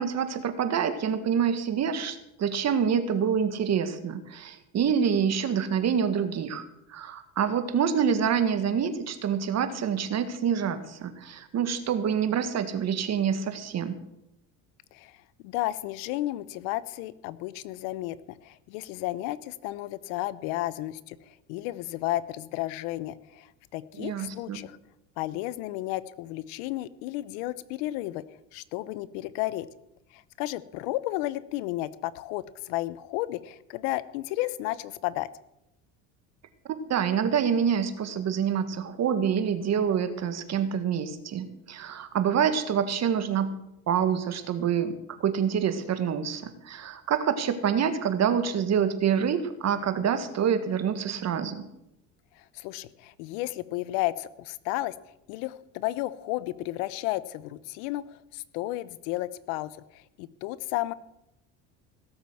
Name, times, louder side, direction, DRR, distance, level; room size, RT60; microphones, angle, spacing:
voice 1, 0.0-6.6 6.9-14.0 24.0-24.6 36.7-43.5 43.9-51.7, right 7 dB, 45° right, 10 dB, 1.8 m, -27 dB
voice 2, 14.9-24.8 25.2-28.2 28.5-29.7 30.1-35.3 52.4-54.9 55.3-60.9, left 16 dB, 85° left, 17 dB, 0.9 m, -33 dB
17.0 x 7.3 x 7.8 m, 0.86 s
supercardioid pair, 110°, 38 cm